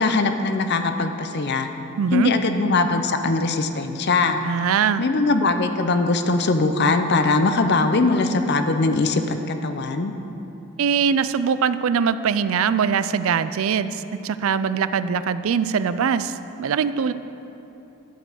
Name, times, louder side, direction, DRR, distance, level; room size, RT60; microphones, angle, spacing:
voice 1, 0.0-1.7 2.1-4.4 5.0-10.1, left 3 dB, 50° left, 7 dB, 0.6 m, -21 dB
voice 2, 2.0-2.3 4.4-5.0 10.8-17.1, right 6 dB, 65° right, 13 dB, 0.4 m, -22 dB
12.0 x 5.2 x 7.9 m, 3.0 s
head